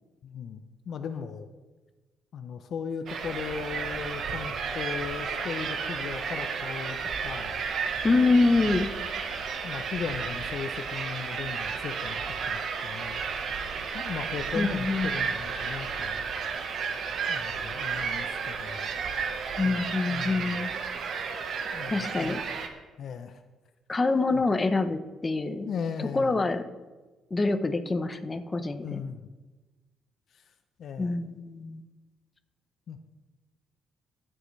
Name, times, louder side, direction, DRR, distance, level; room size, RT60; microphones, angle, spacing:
voice 1, 0.2-1.5 2.3-7.5 9.6-13.2 13.9-16.2 17.3-18.9 19.6-20.6 21.7-22.4 23.0-23.4 24.3-24.4 25.6-26.4 28.8-29.3 30.3-30.5 30.8-31.3 32.9-33.0, left 6 dB, 65° left, 8 dB, 0.7 m, -37 dB
sound 1, 3.1-22.7, right 5 dB, 65° right, 1.2 m, -32 dB
voice 2, 8.0-8.9 14.5-15.1 19.6-20.7 21.9-22.4 23.9-25.7 26.1-26.6 27.3-29.0 31.0-31.8, left 3 dB, 25° left, 8 dB, 0.9 m, -26 dB
23.0 x 7.7 x 3.3 m, 1.2 s
cardioid pair, 90°, 0 cm